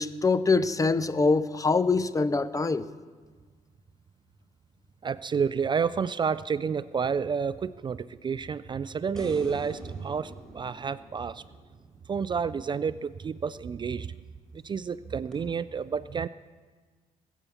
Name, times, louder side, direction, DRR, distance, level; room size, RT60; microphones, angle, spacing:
voice 1, 0.0-2.9, left 4 dB, 25° left, 0.6 m, -24 dB
voice 2, 5.0-11.4 12.1-14.2 14.5-16.3, right 6 dB, 35° right, 0.4 m, -30 dB
sound 1, 9.1-12.5 15.3-15.4, right 1 dB, 5° left, 4.2 m, -45 dB
21.5 x 8.2 x 7.1 m
cardioid pair, 95°, 14 cm